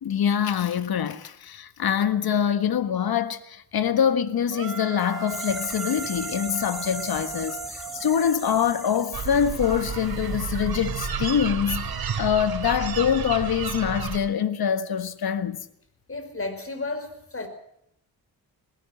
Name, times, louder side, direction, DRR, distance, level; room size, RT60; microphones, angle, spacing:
voice 1, 0.0-15.6, left 8 dB, 75° left, 1.6 m, -25 dB
sound 1, 4.5-8.6, right 7 dB, 60° right, 2.1 m, -38 dB
sound 2, 5.0-10.6 10.9-11.0, right 1 dB, ahead, 7.1 m, -39 dB
sound 3, 9.1-14.2, right 6 dB, 75° right, 3.2 m, -31 dB
voice 2, 16.1-17.5, left 3 dB, 35° left, 5.5 m, -33 dB
20.5 x 17.5 x 7.8 m
cardioid pair, 75°, 37 cm